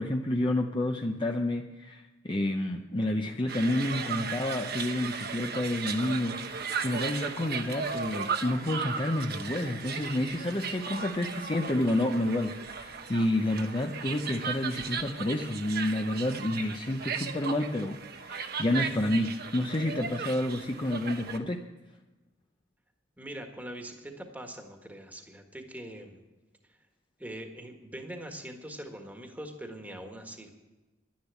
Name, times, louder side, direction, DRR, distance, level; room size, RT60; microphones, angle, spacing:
voice 1, 0.0-18.0 18.2-21.7, left 1 dB, 25° left, 2 dB, 0.7 m, -29 dB
sound 1, 3.5-21.4, right 6 dB, 55° right, 1.0 m, -36 dB
voice 2, 23.2-26.2 27.2-30.5, right 1 dB, 10° right, 4 dB, 1.6 m, -42 dB
11.5 x 10.5 x 8.2 m, 1.1 s
head